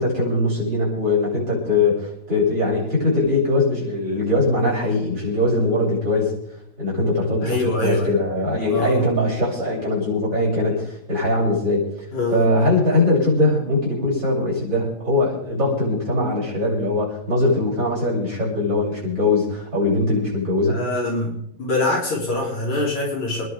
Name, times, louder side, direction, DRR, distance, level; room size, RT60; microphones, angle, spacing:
voice 1, 0.0-6.4 6.8-12.1 12.3-20.8, left 2 dB, 30° right, -7 dB, 7.7 m, -21 dB
voice 2, 7.4-8.2 8.7-9.1 12.1-12.5 20.7-21.3 21.6-23.4, left 1 dB, 50° left, -4 dB, 4.6 m, -24 dB
27.5 x 11.0 x 3.6 m, 0.73 s
omnidirectional pair, 4.2 m